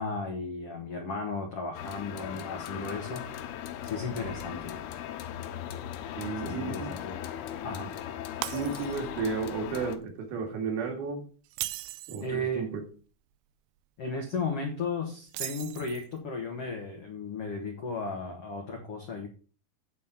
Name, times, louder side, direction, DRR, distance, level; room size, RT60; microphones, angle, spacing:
voice 1, 0.0-3.3 3.8-4.8 6.4-7.1 7.6-7.9 12.2-12.7 14.0-19.3, left 3 dB, 65° left, 1 dB, 1.5 m, -35 dB
sound 1, 1.7-10.0, left 10 dB, 80° left, 2.8 m, -38 dB
voice 2, 6.2-6.9 8.5-11.2 12.1-12.8, right 5 dB, 75° right, 2 dB, 4.1 m, -33 dB
Shatter, 8.4-9.2 9.6-9.8 11.4-12.3 15.3-16.2, right 16 dB, 90° right, 2.6 m, -37 dB
9.4 x 4.2 x 7.3 m, 0.39 s
omnidirectional pair, 4.5 m